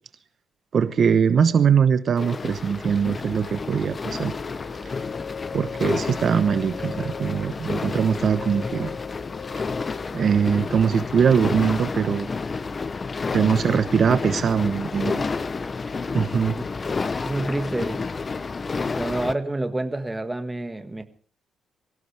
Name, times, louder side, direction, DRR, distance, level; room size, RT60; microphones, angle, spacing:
voice 1, 0.7-4.3 4.8-4.9 5.5-8.9 10.1-12.3 13.3-15.3 16.1-16.6, right 7 dB, 50° right, 1.0 m, -21 dB
sound 1, 2.2-19.3, left 4 dB, 30° left, 0.7 m, -30 dB
sound 2, 3.0-15.8, left 6 dB, 45° left, 3.1 m, -42 dB
voice 2, 17.2-18.1 18.7-21.0, right 2 dB, 15° right, 1.7 m, -28 dB
24.0 x 16.5 x 3.4 m
cardioid pair, 110°, 0 cm